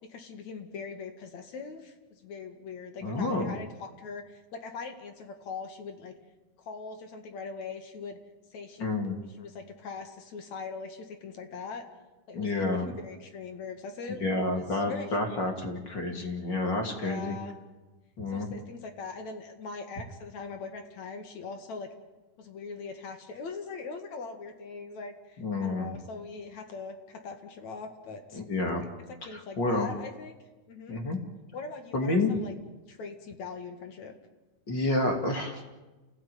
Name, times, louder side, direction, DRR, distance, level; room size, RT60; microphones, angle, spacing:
voice 1, 0.0-6.1 6.6-8.2 8.5-11.8 12.3-15.6 16.9-17.6 18.3-21.9 22.4-28.4 29.1-30.3 30.7-31.0 31.5-32.5 32.9-34.1, left 4 dB, 60° left, 6 dB, 3.2 m, -41 dB
voice 2, 3.0-3.5 8.8-9.2 12.3-12.9 14.2-17.4 18.2-18.5 25.4-26.0 28.3-28.9 29.3-29.9 30.9-31.2 31.9-32.3 34.7-35.6, left 2 dB, 35° left, 3 dB, 3.1 m, -29 dB
28.5 x 17.0 x 9.4 m, 1.2 s
omnidirectional pair, 3.7 m